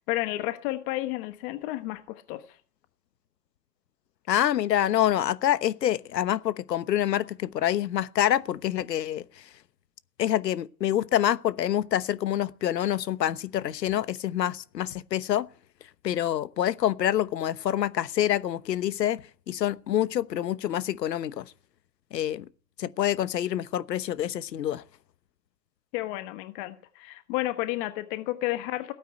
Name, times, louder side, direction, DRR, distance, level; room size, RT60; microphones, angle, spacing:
voice 1, 0.0-2.4 25.9-28.9, left 17 dB, 35° left, 1.2 m, -31 dB
voice 2, 4.3-9.2 10.2-15.5 16.0-21.4 22.1-22.4 22.8-24.8, left 11 dB, 85° left, 1.2 m, -26 dB
17.0 x 9.4 x 8.7 m
hypercardioid pair, 140°, 48 cm